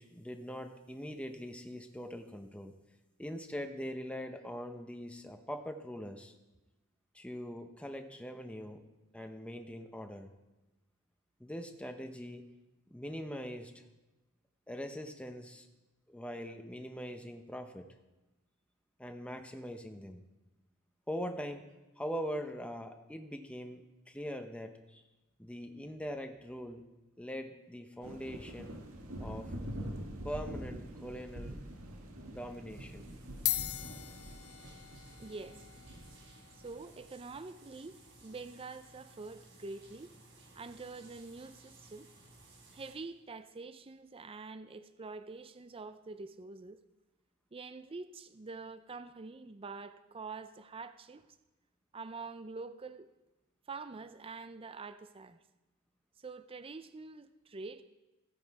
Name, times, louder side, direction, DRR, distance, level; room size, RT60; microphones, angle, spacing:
voice 1, 0.0-2.7 3.2-6.3 7.1-8.9 9.1-10.3 11.4-12.5 12.9-13.8 14.7-15.7 16.1-17.9 19.0-20.2 21.1-21.6 22.0-25.0 25.4-26.8 27.2-28.8 29.2-29.5 30.2-31.6 32.3-33.1 34.6-34.8, equal, 5° left, 5 dB, 0.8 m, -42 dB
sound 1, 28.0-37.1, right 1 dB, 75° right, 1.8 m, -45 dB
sound 2, 31.8-32.1 32.9-33.0 33.3-42.0, left 16 dB, 75° left, 0.5 m, -43 dB
sound 3, 32.7-42.9, right 2 dB, 55° right, 4.2 m, -59 dB
voice 2, 35.2-35.6 36.5-40.2 40.6-42.1 42.7-46.8 47.5-51.3 51.9-53.1 53.7-55.4 56.2-57.8, right 3 dB, 25° right, 11 dB, 0.5 m, -46 dB
15.5 x 9.1 x 4.7 m, 1.0 s
head